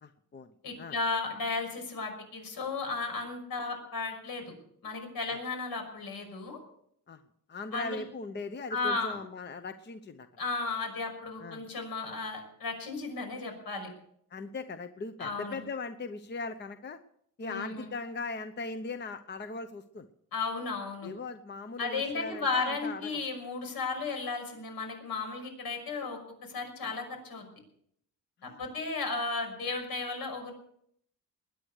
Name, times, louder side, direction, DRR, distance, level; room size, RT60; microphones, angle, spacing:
voice 1, 0.0-0.5 0.8-1.0 7.1-7.2 7.5-10.3 11.4-11.6 14.3-17.0 17.4-20.1 21.0-23.2 28.4-28.6, left 3 dB, 30° left, 9 dB, 0.8 m, -39 dB
voice 2, 0.6-4.5 4.8-6.6 7.7-8.0 8.7-9.2 10.4-13.9 15.2-15.6 17.4-17.9 20.3-21.1 21.8-27.5 28.4-30.5, left 3 dB, 70° left, 4 dB, 6.0 m, -34 dB
21.0 x 9.9 x 6.5 m, 0.70 s
cardioid pair, 145°, 36 cm